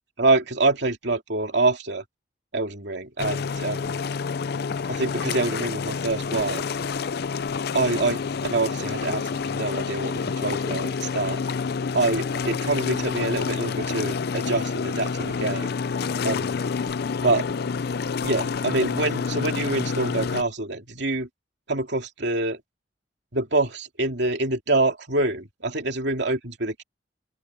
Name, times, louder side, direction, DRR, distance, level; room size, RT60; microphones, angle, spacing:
voice 1, 0.2-2.0 2.5-4.0 4.9-6.7 7.7-11.4 11.9-15.7 16.2-16.6 17.2-17.4 18.2-21.3 21.7-22.6 23.3-26.8, right 2 dB, 65° right, 2.9 m, -26 dB
sound 1, 3.2-20.4, left 5 dB, 55° left, 0.5 m, -28 dB
open air
head